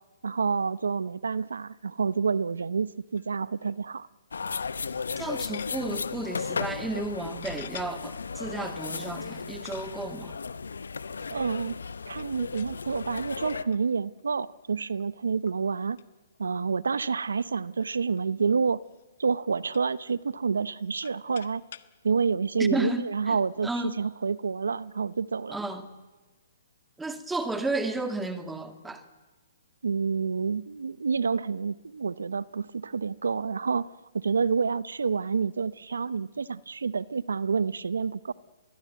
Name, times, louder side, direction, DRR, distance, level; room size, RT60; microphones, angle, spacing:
voice 1, 0.2-4.1 11.3-11.8 12.1-16.0 16.4-18.8 19.2-21.6 22.0-25.6 29.8-38.3, right 5 dB, 85° right, 0.7 m, -28 dB
sound 1, 3.1-3.3 3.6-3.7 5.2-6.0 6.5-6.7 7.4-7.9 8.8-8.9 9.7-10.2 12.1-12.8 13.5-13.8 14.2-14.3 15.0-15.1 15.4-15.6 16.0-16.1 16.3-16.4 16.7-16.8 17.3-18.2 18.9-19.0 19.3-20.1 20.7-21.9, left 9 dB, 60° left, 1.4 m, -47 dB
sound 2, 4.3-13.6, left 5 dB, 85° left, 1.2 m, -35 dB
voice 2, 5.2-10.3 22.6-23.4 23.6-23.9 25.5-25.9 27.0-29.0, right 2 dB, 5° right, 1.9 m, -33 dB
24.5 x 20.0 x 9.3 m
hypercardioid pair, 140°, 0 cm